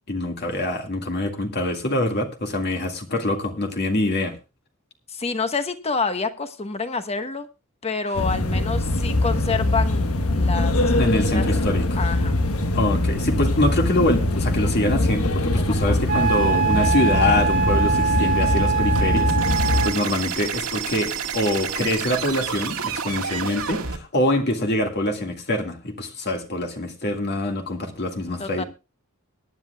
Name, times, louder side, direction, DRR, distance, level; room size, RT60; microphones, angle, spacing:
voice 1, 0.1-4.4 11.0-12.0 12.7-28.6, left 1 dB, 50° left, 1.9 m, -24 dB
voice 2, 5.1-7.5 7.8-10.1 10.3-10.9 11.3-11.5 12.0-12.4 15.7-16.3 28.4-28.6, left 4 dB, 30° left, 1.2 m, -28 dB
sound 1, 8.1-19.9, left 1 dB, 85° left, 1.3 m, -22 dB
Wind instrument woodwind instrument, 16.1-20.0, right 6 dB, 50° right, 1.6 m, -23 dB
sound 2, 18.9-24.0, right 7 dB, 80° right, 1.9 m, -29 dB
23.5 x 10.5 x 2.3 m
head